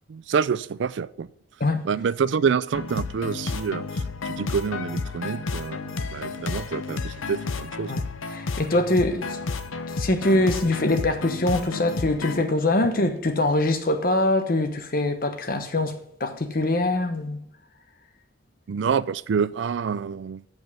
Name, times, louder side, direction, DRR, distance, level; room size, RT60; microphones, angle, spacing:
voice 1, 0.1-1.3 1.8-7.9 18.7-20.4, right 6 dB, 65° right, 0.4 m, -27 dB
sound 1, 2.7-12.4, left 4 dB, 90° left, 0.7 m, -31 dB
voice 2, 8.3-9.4 10.0-17.4, left 2 dB, 45° left, 1.0 m, -23 dB
8.2 x 5.3 x 7.3 m
head